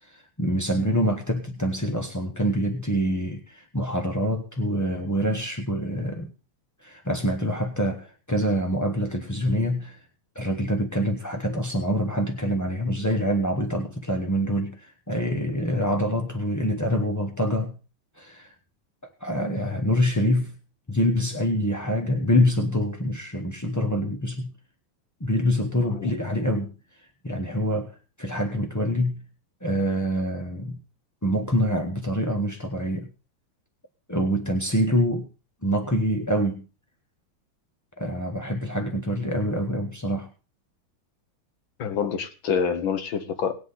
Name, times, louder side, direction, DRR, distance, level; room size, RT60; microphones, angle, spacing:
voice 1, 0.0-6.3 6.8-10.0 10.3-17.8 18.2-18.5 19.2-20.6 20.9-24.5 25.2-26.7 27.2-29.2 29.6-30.8 31.2-33.1 34.1-35.3 35.6-36.6 38.0-40.3, equal, 20° left, 0.5 m, -25 dB
voice 2, 41.8-43.5, left 6 dB, 70° left, 2.1 m, -26 dB
19.0 x 8.2 x 4.1 m
omnidirectional pair, 2.3 m